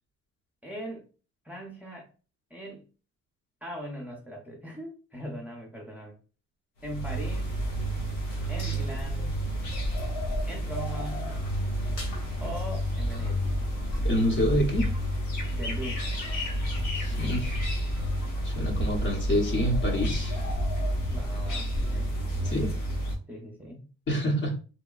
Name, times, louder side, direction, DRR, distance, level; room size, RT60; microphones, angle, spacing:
voice 1, 0.6-1.0 1.4-2.1 2.5-2.8 3.6-6.2 6.8-7.5 8.5-9.4 10.4-11.4 12.4-13.5 15.5-16.0 21.1-22.1 22.4-22.8 23.3-23.9, equal, 5° right, -1 dB, 0.7 m, -40 dB
sound 1, 6.8-23.1, equal, 90° left, 0.8 m, -30 dB
voice 2, 14.0-14.9 16.9-17.6 18.4-20.4 22.4-22.7 24.1-24.5, equal, 40° left, 0 dB, 0.9 m, -27 dB
2.9 x 2.1 x 2.3 m, 0.35 s
cardioid pair, 90°, 30 cm